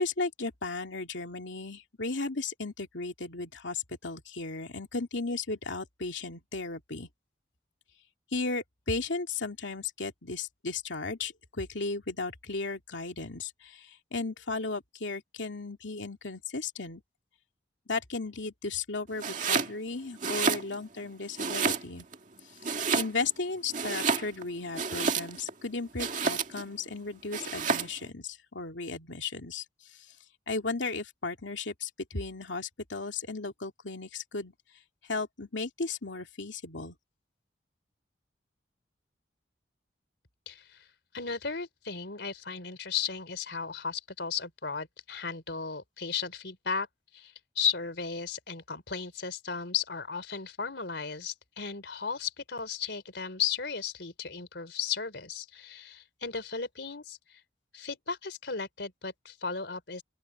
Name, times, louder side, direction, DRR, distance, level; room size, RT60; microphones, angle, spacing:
voice 1, 0.0-7.1 8.3-17.0 17.9-22.1 22.9-29.6 29.9-30.1 30.5-34.5 35.1-37.0, left 3 dB, 85° left, 2.5 m, -35 dB
Domestic sounds home sounds, 19.2-19.7 20.1-21.0 21.4-22.2 22.6-23.4 23.7-25.5 26.0-26.7 27.3-28.0, right 5 dB, 45° right, 2.1 m, -30 dB
voice 2, 40.5-40.9 41.1-46.9 47.1-57.4 57.7-60.0, left 6 dB, 70° left, 3.6 m, -35 dB
open air
head